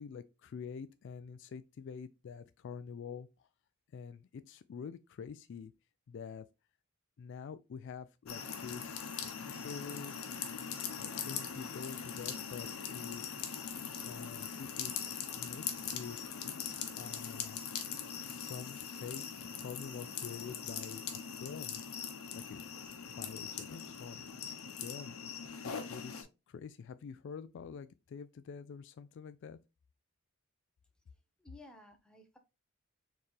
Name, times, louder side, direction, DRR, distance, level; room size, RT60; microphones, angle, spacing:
voice 1, 0.0-3.5 3.9-5.7 6.1-6.5 7.2-10.2 10.9-13.2 14.1-14.9 15.3-15.6 15.9-16.2 16.4-16.7 17.0-17.6 18.1-21.8 22.3-22.6 23.2-24.3 24.8-25.2 25.6-29.6, left 6 dB, 55° left, 0.3 m, -47 dB
sound 1, 8.3-26.2, left 7 dB, 80° left, 0.8 m, -41 dB
voice 2, 31.4-32.4, left 1 dB, 5° left, 0.8 m, -55 dB
4.5 x 3.5 x 3.2 m
head